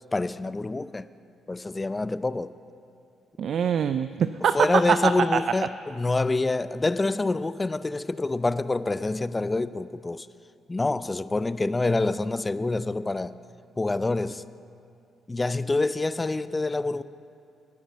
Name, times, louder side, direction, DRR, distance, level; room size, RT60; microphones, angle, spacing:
voice 1, 0.1-1.1 1.5-2.5 4.5-10.3 10.7-13.4 13.8-14.4 15.3-17.0, left 2 dB, 20° left, 0.4 m, -26 dB
voice 2, 3.4-5.4, right 7 dB, 60° right, 0.3 m, -23 dB
10.5 x 10.0 x 7.4 m
cardioid pair, 90°, 0 cm